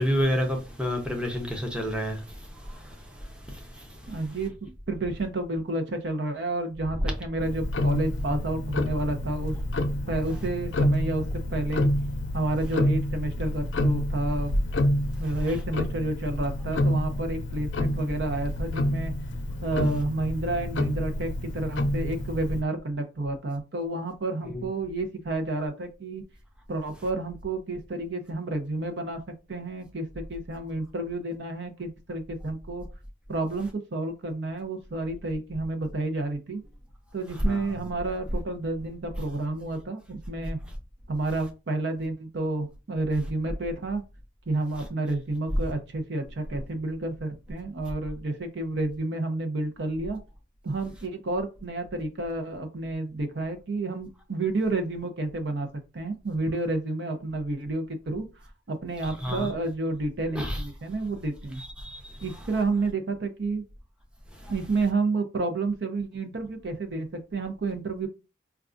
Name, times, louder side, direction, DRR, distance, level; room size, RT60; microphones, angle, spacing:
voice 1, 0.0-4.2 7.0-7.1 24.5-24.7 37.4-37.8 59.0-59.5 60.3-60.6 61.6-62.2 64.3-64.5, equal, 5° right, 0.7 m, -30 dB
voice 2, 4.1-9.6 10.1-11.9 12.3-14.5 15.2-19.1 19.6-26.2 26.7-29.2 29.5-32.9 33.3-36.6 37.1-40.6 41.1-44.0 44.5-50.2 50.6-55.7 55.9-58.3 58.7-61.6 62.2-63.6 64.5-68.1, right 2 dB, 65° right, 0.6 m, -30 dB
Tick-tock, 7.4-22.6, left 1 dB, 90° left, 0.5 m, -28 dB
4.5 x 2.3 x 2.5 m
head